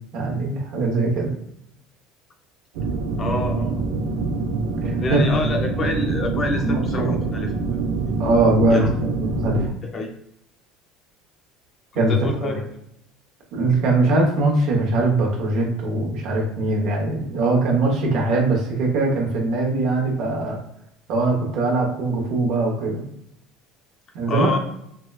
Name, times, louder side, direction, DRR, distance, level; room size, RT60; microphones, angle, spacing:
voice 1, 0.1-1.3 4.8-5.2 6.6-7.2 8.2-9.7 11.9-12.1 12.4-12.6 13.5-20.6 21.1-23.0 24.1-24.6, right 2 dB, 55° right, 0 dB, 0.9 m, -21 dB
sound 1, 2.7-9.7, right 3 dB, 80° right, 0.5 m, -25 dB
voice 2, 3.2-3.8 4.8-7.5 8.1-8.2 8.7-8.9 9.9-10.1 11.9-12.7 24.3-24.6, left 2 dB, 25° left, 3 dB, 0.5 m, -27 dB
4.6 x 2.1 x 2.3 m, 0.76 s
cardioid pair, 170°, 0 cm